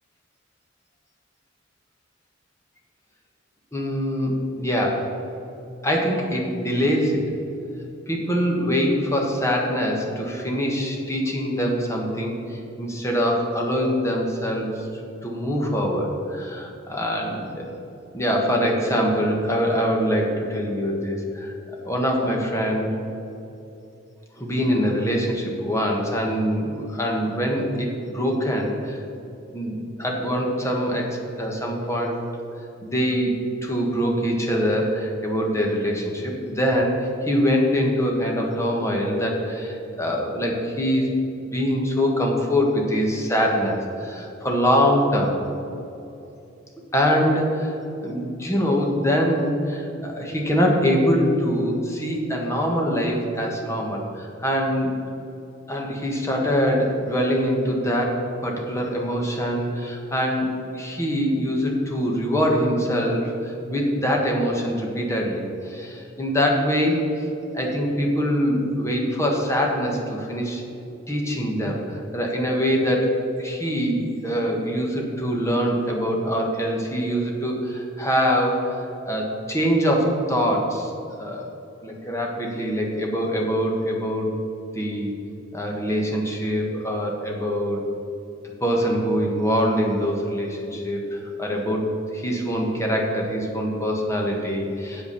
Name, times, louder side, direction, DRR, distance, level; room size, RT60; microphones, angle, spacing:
voice 1, 3.7-5.0 5.8-7.3 8.1-17.7 18.1-21.5 21.8-22.9 24.4-29.0 29.5-32.2 32.8-33.3 33.6-41.1 41.4-45.4 46.9-47.7 48.0-54.9 55.7-67.2 67.5-70.6 71.1-73.1 73.4-80.9 81.2-81.5 81.8-84.3 84.7-85.1 85.5-87.8 88.6-91.9 92.1-95.0, equal, 15° left, 0 dB, 1.5 m, -24 dB
8.2 x 7.5 x 6.8 m, 2.8 s
head